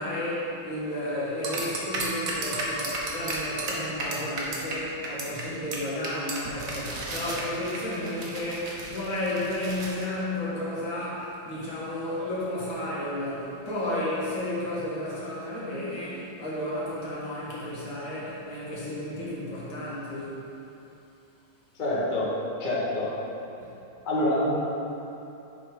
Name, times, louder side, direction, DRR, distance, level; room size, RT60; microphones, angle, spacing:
voice 1, 0.0-20.4 23.6-23.7, left 1 dB, 75° left, -8 dB, 2.3 m, -32 dB
sound 1, 1.4-4.8 5.0-5.4 5.7-5.8 6.0-10.0, right 2 dB, 55° right, 1.2 m, -33 dB
voice 2, 21.8-22.3 22.6-23.1 24.0-24.5, left 1 dB, 30° left, -7 dB, 1.1 m, -26 dB
6.5 x 4.9 x 4.7 m, 2.9 s
omnidirectional pair, 2.2 m